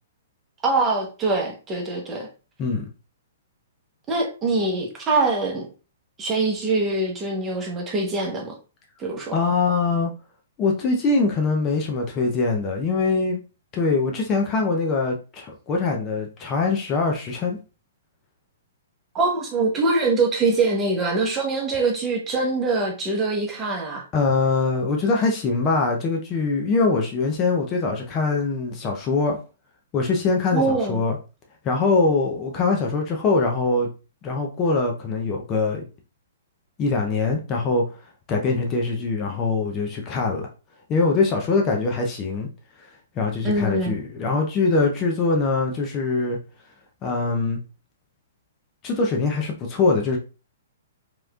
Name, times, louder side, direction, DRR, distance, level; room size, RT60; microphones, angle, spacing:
voice 1, 0.6-2.3 4.1-5.7 6.2-8.5 9.0-9.3 19.1-24.0 30.5-31.0 43.4-44.0, right 3 dB, 20° right, 0.9 m, -23 dB
voice 2, 9.3-10.1 10.6-13.4 13.7-17.6 24.1-29.4 29.9-31.2 31.6-33.9 34.2-35.8 36.8-37.8 38.3-40.5 40.9-42.5 43.2-46.4 47.0-47.6 48.8-50.2, left 3 dB, 30° left, 0.6 m, -23 dB
3.1 x 3.0 x 2.3 m
hypercardioid pair, 125°, 0 cm